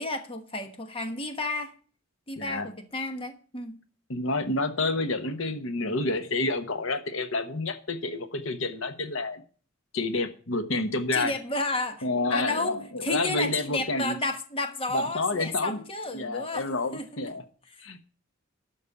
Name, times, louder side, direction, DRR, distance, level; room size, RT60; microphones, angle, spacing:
voice 1, 0.0-1.7 2.3-3.8 11.1-16.7 16.9-17.1 17.8-18.0, left 2 dB, 25° left, 7 dB, 1.2 m, -32 dB
voice 2, 2.4-2.7 4.1-9.4 9.9-11.3 12.0-14.2 14.9-15.8 16.1-17.4 17.8-18.0, left 2 dB, 70° left, 9 dB, 1.1 m, -29 dB
12.5 x 5.3 x 7.2 m, 0.40 s
head